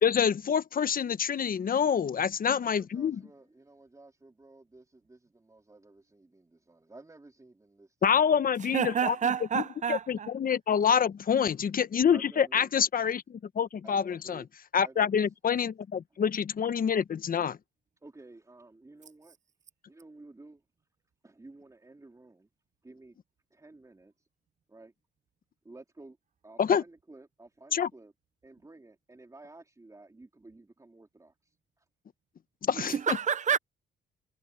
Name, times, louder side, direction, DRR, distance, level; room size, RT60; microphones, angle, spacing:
voice 1, 0.0-3.2 8.0-9.2 9.5-9.6 9.9-14.4 14.7-17.6 26.6-26.8 27.7-27.9 32.6-32.9, left 7 dB, 45° left, 1.1 m, -26 dB
voice 2, 2.5-8.3 12.1-12.7 13.8-14.5 14.8-15.2 18.0-19.4 19.9-20.6 21.2-22.5 22.8-23.2 23.5-24.3 24.7-24.9 25.6-26.2 26.4-28.1 28.4-31.8, right 2 dB, 15° right, 3.7 m, -53 dB
voice 3, 8.7-10.3 32.7-33.6, right 7 dB, 40° right, 0.7 m, -28 dB
cardioid pair, 90°, 20 cm